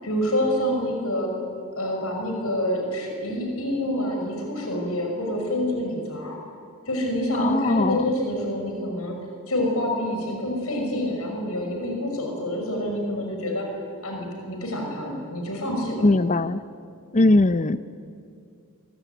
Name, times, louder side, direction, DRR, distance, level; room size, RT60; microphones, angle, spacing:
voice 1, 0.0-1.3 1.7-6.4 6.9-9.2 9.5-13.7 14.0-16.0, left 1 dB, 75° left, 1 dB, 5.9 m, -27 dB
voice 2, 7.4-8.0 16.0-16.6 17.1-17.8, left 2 dB, 30° left, 14 dB, 0.6 m, -20 dB
25.0 x 23.0 x 9.3 m, 2.4 s
head